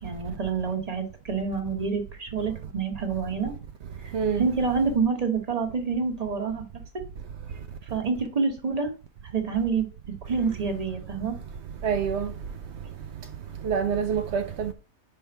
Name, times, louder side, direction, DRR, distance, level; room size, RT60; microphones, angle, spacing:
voice 1, 0.0-3.5 4.0-4.1 4.4-6.6 7.9-8.9 9.3-9.9 10.2-11.4, right 5 dB, 25° right, 1.1 m, -27 dB
voice 2, 4.1-4.5 11.8-12.3 13.6-14.7, right 7 dB, 75° right, 0.6 m, -26 dB
5.5 x 4.4 x 5.8 m
omnidirectional pair, 1.8 m